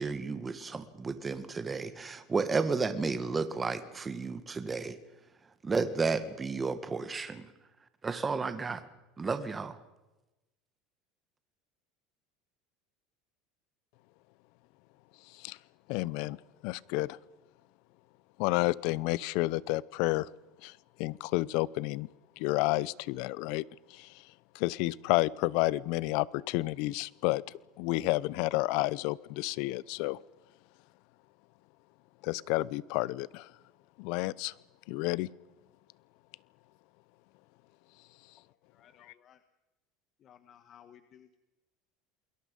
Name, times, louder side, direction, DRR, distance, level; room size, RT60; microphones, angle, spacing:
voice 1, 0.0-5.0 5.6-7.5 8.0-8.8 9.2-9.8, right 4 dB, 20° right, 10 dB, 1.8 m, -32 dB
voice 2, 15.2-15.6 15.9-16.4 16.6-17.2 18.4-20.3 20.6-22.1 22.4-27.4 27.8-30.2 32.2-33.5 34.0-34.5 34.9-35.3, left 20 dB, 70° left, 22 dB, 0.7 m, -31 dB
voice 3, 38.7-39.4 40.2-41.4, left 9 dB, 40° left, 10 dB, 1.3 m, -57 dB
28.5 x 21.5 x 5.4 m, 1.0 s
supercardioid pair, 130°, 0 cm